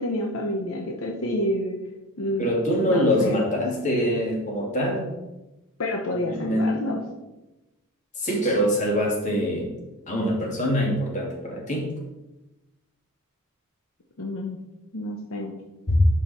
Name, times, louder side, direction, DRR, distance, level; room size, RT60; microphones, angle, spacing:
voice 1, 0.0-1.8 2.2-2.5 2.8-3.4 5.8-7.0 14.2-14.6 14.9-15.5, left 1 dB, 65° left, 1 dB, 1.0 m, -28 dB
voice 2, 2.4-5.1 6.1-6.8 8.2-9.7 10.1-11.9 15.9-16.0, equal, 35° left, -2 dB, 2.6 m, -24 dB
11.0 x 5.1 x 4.4 m, 1.0 s
head